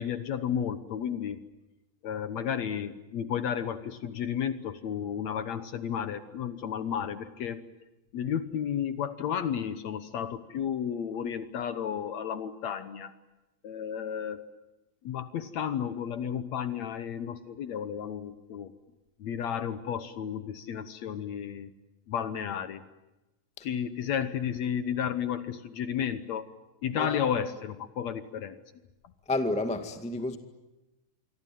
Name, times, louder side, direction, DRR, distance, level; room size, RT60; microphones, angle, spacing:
voice 1, 0.0-1.4 2.0-7.6 8.1-13.1 13.6-14.4 15.0-18.7 19.2-21.7 22.1-22.8 23.6-26.5 26.8-28.6, left 8 dB, 65° left, 12 dB, 1.9 m, -32 dB
voice 2, 29.3-30.4, left 2 dB, 5° left, 8 dB, 0.6 m, -30 dB
27.5 x 23.5 x 9.2 m, 1.0 s
omnidirectional pair, 4.2 m